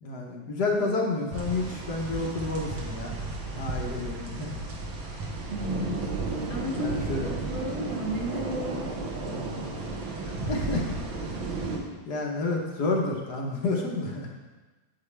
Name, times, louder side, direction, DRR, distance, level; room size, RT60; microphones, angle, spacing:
voice 1, 0.0-3.1 3.6-4.5 6.8-7.3 10.2-10.9 12.1-14.3, left 3 dB, 60° left, 0 dB, 1.4 m, -30 dB
sound 1, 1.3-11.8, right 3 dB, 80° right, 1.9 m, -33 dB
voice 2, 5.5-6.2 6.5-9.4, right 1 dB, 40° right, -4 dB, 1.2 m, -34 dB
8.4 x 8.4 x 3.3 m, 1.2 s
omnidirectional pair, 2.2 m